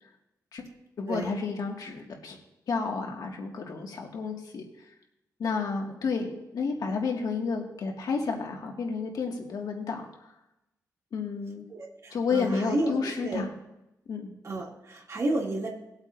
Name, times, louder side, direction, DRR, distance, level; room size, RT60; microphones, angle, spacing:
voice 1, 1.0-2.4 2.7-4.6 5.4-10.0 11.1-11.7 12.1-13.5 14.1-14.3, left 5 dB, 80° left, 1 dB, 2.0 m, -31 dB
voice 2, 11.7-12.9 13.2-13.4 14.4-15.7, right 2 dB, 50° right, -1 dB, 2.6 m, -31 dB
20.5 x 8.0 x 2.7 m, 0.91 s
cardioid pair, 85°, 6 cm